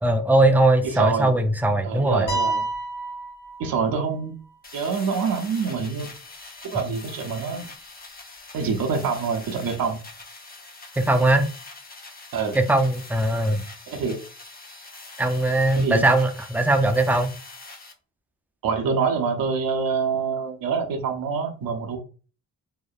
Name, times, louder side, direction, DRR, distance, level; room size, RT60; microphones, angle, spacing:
voice 1, 0.0-2.3 11.0-11.5 12.5-13.7 15.2-17.3, right 1 dB, 5° right, 0.4 m, -20 dB
voice 2, 0.9-1.3 1.8-2.6 3.6-4.3 4.7-6.1 6.7-7.7 8.5-10.0 12.3-12.6 13.9-14.2 15.8-16.0 18.6-22.0, right 5 dB, 65° right, 0.7 m, -26 dB
sound 1, 2.3-4.2, right 2 dB, 50° left, 1.2 m, -29 dB
sound 2, 4.6-17.9, left 3 dB, 25° left, 0.7 m, -43 dB
2.8 x 2.0 x 2.3 m
cardioid pair, 60°, 39 cm